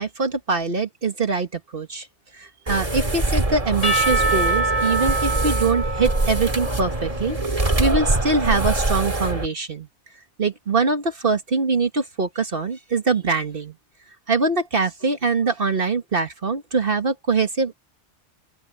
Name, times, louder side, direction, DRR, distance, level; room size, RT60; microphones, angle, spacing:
voice 1, 0.0-2.1 2.4-9.9 10.4-13.7 14.3-17.7, right 4 dB, 50° right, 1.8 m, -23 dB
sound 1, 2.7-9.5, right 2 dB, 30° right, 2.2 m, -24 dB
Percussion / Church bell, 3.8-7.7, right 2 dB, 80° left, 5.9 m, -25 dB
open air
omnidirectional pair, 1.2 m